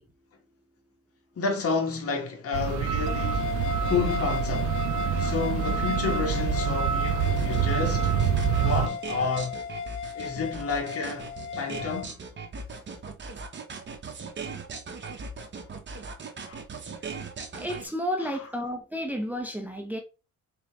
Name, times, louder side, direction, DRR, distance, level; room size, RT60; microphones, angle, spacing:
voice 1, 1.3-3.6 3.8-4.9 5.2-8.2 8.6-9.5 10.1-11.3 11.6-12.2 16.5-16.6 18.2-18.3, left 5 dB, 50° left, 1.5 m, -30 dB
sound 1, 2.5-8.9, right 8 dB, 85° right, 0.6 m, -26 dB
sound 2, 3.1-12.1, left 6 dB, 75° left, 0.5 m, -35 dB
sound 3, 7.2-17.9, right 4 dB, 40° right, 1.0 m, -39 dB
voice 2, 17.6-20.0, equal, 5° right, 0.8 m, -31 dB
4.0 x 3.3 x 3.2 m
cardioid pair, 90°, 30 cm